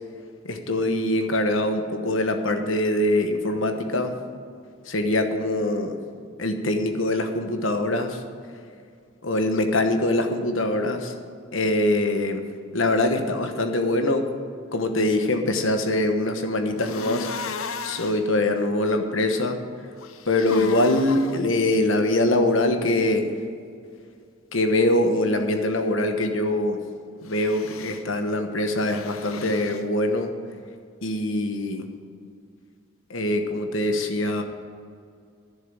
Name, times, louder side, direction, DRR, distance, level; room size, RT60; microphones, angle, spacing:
voice 1, 0.4-4.1 4.9-6.0 6.4-8.2 9.2-11.1 11.5-12.4 12.7-14.3 14.7-19.6 20.3-23.3 24.5-26.8 27.2-30.3 31.0-31.9 33.1-34.4, left 1 dB, 70° left, 6 dB, 1.2 m, -23 dB
sound 1, 16.8-18.2 20.0-21.4 27.3-28.0 28.8-29.8, left 5 dB, 85° left, 0.7 m, -35 dB
11.5 x 7.1 x 9.0 m, 2.2 s
head